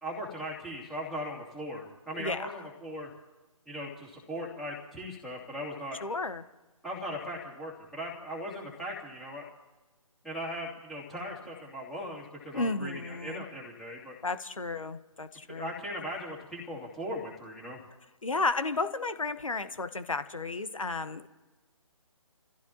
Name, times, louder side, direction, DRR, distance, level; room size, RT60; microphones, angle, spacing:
voice 1, 0.0-3.1 3.7-6.0 6.8-9.5 10.2-14.1 15.5-17.8, equal, ahead, -6 dB, 2.9 m, -39 dB
voice 2, 2.1-2.5 6.0-6.4 12.5-13.4 14.2-15.7 18.2-21.3, left 3 dB, 70° left, 11 dB, 1.3 m, -33 dB
30.0 x 15.0 x 3.0 m, 1.2 s
figure-of-eight pair, 145°, 18 cm